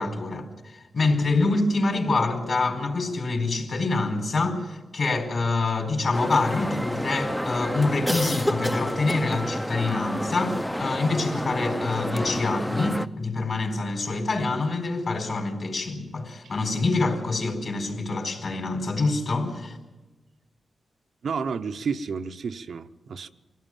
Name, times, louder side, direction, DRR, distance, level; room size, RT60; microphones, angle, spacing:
voice 1, 0.0-19.8, left 3 dB, 55° left, 4.2 m, -26 dB
sound 1, 6.1-13.1, equal, 5° left, 0.6 m, -29 dB
voice 2, 21.2-23.3, right 5 dB, 70° right, 0.8 m, -31 dB
23.5 x 16.5 x 7.4 m
wide cardioid pair, 100°, 0 cm